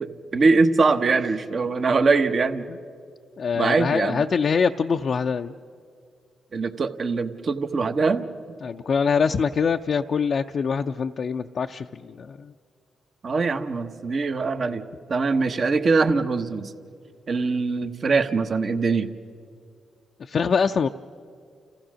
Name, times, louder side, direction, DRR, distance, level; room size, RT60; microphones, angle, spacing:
voice 1, 0.0-2.7 3.5-4.2 6.5-8.2 13.2-14.8 15.1-16.7 17.3-19.1, right 4 dB, 55° right, 8 dB, 1.0 m, -22 dB
voice 2, 3.4-5.5 8.6-12.5 20.2-20.9, left 6 dB, 60° left, 5 dB, 0.4 m, -24 dB
29.5 x 15.0 x 6.3 m, 2.3 s
supercardioid pair, 60°, 0 cm